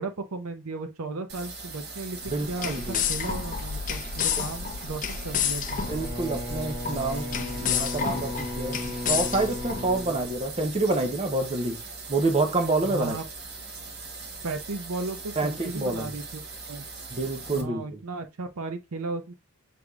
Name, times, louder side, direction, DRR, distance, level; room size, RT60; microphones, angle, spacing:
voice 1, 0.0-5.8 12.8-13.2 14.4-16.9 17.5-19.3, right 3 dB, 80° right, 0.7 m, -35 dB
sound 1, 1.3-17.6, right 4 dB, 45° right, 1.0 m, -40 dB
sound 2, 2.2-10.3, left 7 dB, 35° left, 0.4 m, -31 dB
voice 2, 2.3-3.0 5.9-11.8 12.1-13.2 15.4-16.1 17.1-18.0, right 2 dB, 25° right, 0.6 m, -28 dB
Bowed string instrument, 5.7-11.0, left 1 dB, 10° left, 1.0 m, -37 dB
6.7 x 3.4 x 2.3 m
head